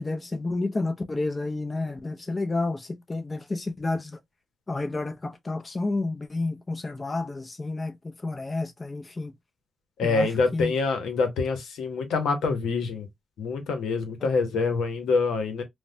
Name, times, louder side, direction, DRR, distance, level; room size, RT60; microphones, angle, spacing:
voice 1, 0.0-4.2 4.7-8.0 8.2-9.3 10.0-10.7, left 2 dB, 35° left, 0.6 m, -30 dB
voice 2, 10.0-13.1 13.4-15.6, left 4 dB, 90° left, 0.8 m, -26 dB
3.1 x 2.1 x 2.6 m
cardioid pair, 55°, 0 cm